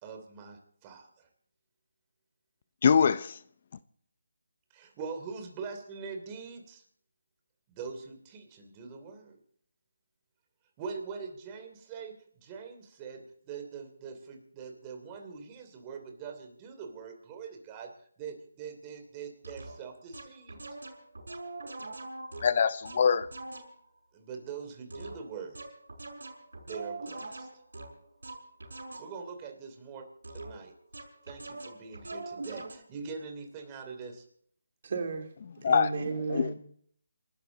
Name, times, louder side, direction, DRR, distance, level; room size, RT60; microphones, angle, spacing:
voice 1, 0.0-1.3 4.7-6.8 7.7-9.4 10.8-17.9 18.2-20.6 24.1-25.6 26.6-27.5 29.0-30.0 30.3-30.7 31.2-34.2, right 5 dB, 20° right, 3.0 m, -43 dB
voice 2, 2.8-3.4 22.4-23.3 35.6-35.9 36.3-36.5, left 6 dB, 45° left, 0.6 m, -23 dB
sound 1, 19.4-19.7 20.1-23.8 24.9-29.3 30.2-30.7 30.9-32.8, right 2 dB, 80° right, 5.8 m, -43 dB
voice 3, 34.8-35.3 35.6-36.5, right 4 dB, 50° right, 3.0 m, -33 dB
28.5 x 12.5 x 4.0 m
figure-of-eight pair, 160°, 0 cm